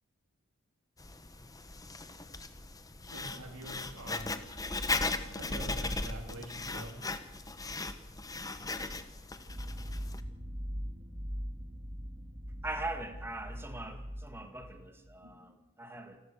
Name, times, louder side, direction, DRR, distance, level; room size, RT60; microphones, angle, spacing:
Writing, 1.0-10.2, left 3 dB, 15° left, 1.1 m, -38 dB
voice 1, 3.1-4.4 5.0-6.9 15.2-15.6, right 1 dB, 70° right, 0 dB, 3.4 m, -46 dB
sound 1, 9.5-15.1, equal, 30° right, 2.3 m, -41 dB
voice 2, 12.6-16.2, right 2 dB, 10° right, 5 dB, 2.2 m, -41 dB
28.5 x 13.0 x 7.8 m, 1.0 s
head